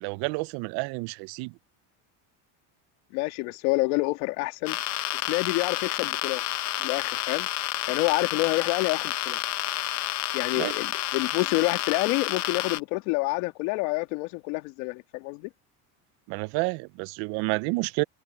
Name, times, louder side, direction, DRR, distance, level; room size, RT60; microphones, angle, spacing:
voice 1, 0.0-1.5 10.6-10.7 16.3-18.0, right 26 dB, 65° right, 0.5 m, -29 dB
voice 2, 3.1-4.8 5.3-6.4 6.8-7.5 7.9-9.4 10.3-15.5, left 23 dB, 90° left, 2.1 m, -28 dB
sound 1, 4.7-12.8, left 15 dB, 40° left, 0.7 m, -30 dB
cardioid pair, 150°, 41 cm